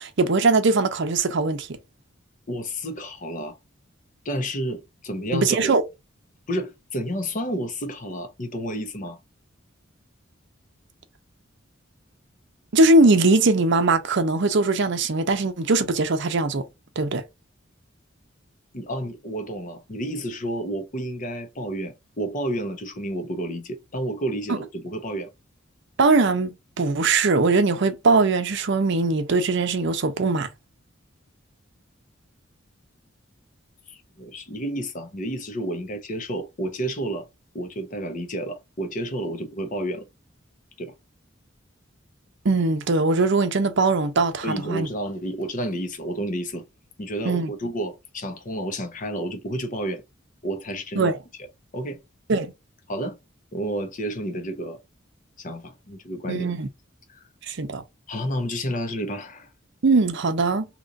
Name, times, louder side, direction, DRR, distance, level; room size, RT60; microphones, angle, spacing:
voice 1, 0.0-1.7 5.3-5.8 12.7-16.6 17.0-17.2 24.5-24.6 26.0-30.5 42.4-44.9 47.2-47.5 51.0-51.2 52.3-52.5 56.3-56.7 57.4-57.8 59.8-60.7, right 3 dB, 60° right, 0.6 m, -21 dB
voice 2, 2.5-3.6 4.2-5.7 6.5-9.2 18.7-25.3 33.9-37.3 37.5-40.0 40.8-40.9 44.4-46.6 47.0-50.0 50.4-51.1 51.7-52.0 52.9-53.2 53.5-54.8 55.4-56.5 57.1-57.2 58.1-59.5, right 1 dB, 40° left, 0.8 m, -30 dB
3.0 x 2.5 x 3.9 m
head